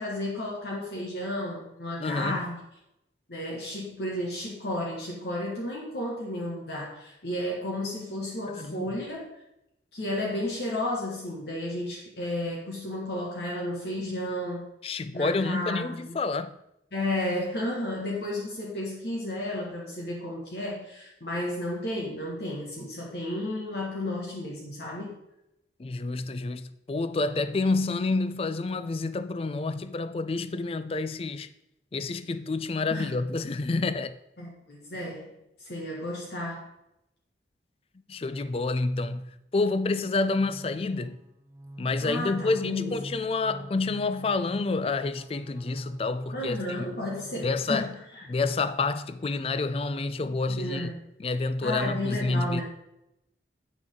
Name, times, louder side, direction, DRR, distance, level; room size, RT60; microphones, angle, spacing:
voice 1, 0.0-2.6 3.3-9.3 9.9-14.6 15.1-16.2 16.9-25.2 32.9-33.2 34.4-35.3 35.6-36.7 42.0-43.0 46.3-48.3 50.5-51.0 51.6-52.6, left 1 dB, 65° left, 1.5 m, -33 dB
voice 2, 2.0-2.4 8.5-8.9 14.8-16.5 25.8-31.5 31.9-34.2 38.1-41.2 41.8-46.6 47.4-47.9 48.3-50.9 51.2-52.6, left 3 dB, 35° left, 0.4 m, -28 dB
sound 1, 40.3-48.2, right 1 dB, 15° right, 0.8 m, -46 dB
8.9 x 6.1 x 3.7 m
head